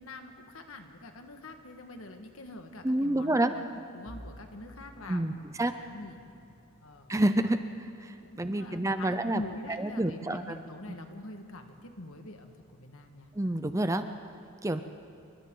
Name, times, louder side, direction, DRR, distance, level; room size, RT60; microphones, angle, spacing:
voice 1, 0.0-3.7 3.9-6.2 6.8-7.5 8.2-13.3, left 2 dB, 75° left, 5 dB, 1.7 m, -45 dB
voice 2, 2.8-3.5 5.1-5.3 5.6-5.7 7.1-7.6 8.0-9.4 9.8-10.6 13.4-14.0 14.6-14.8, right 1 dB, 15° right, 9 dB, 0.5 m, -28 dB
Bowed string instrument, 4.0-9.1, equal, 20° left, 2.3 m, -54 dB
28.0 x 24.5 x 3.9 m, 2.5 s
head